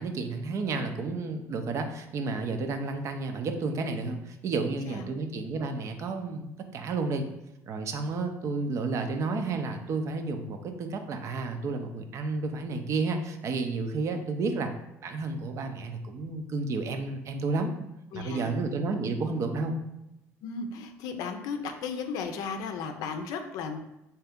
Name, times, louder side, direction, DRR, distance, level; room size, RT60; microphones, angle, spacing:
voice 1, 0.0-7.3 7.7-14.7 15.0-17.7 18.1-19.8, right 3 dB, 55° right, 6 dB, 0.5 m, -31 dB
voice 2, 18.1-18.5 20.4-23.8, left 5 dB, 80° left, 6 dB, 0.5 m, -35 dB
3.3 x 2.9 x 3.5 m, 0.89 s
cardioid pair, 100°, 6 cm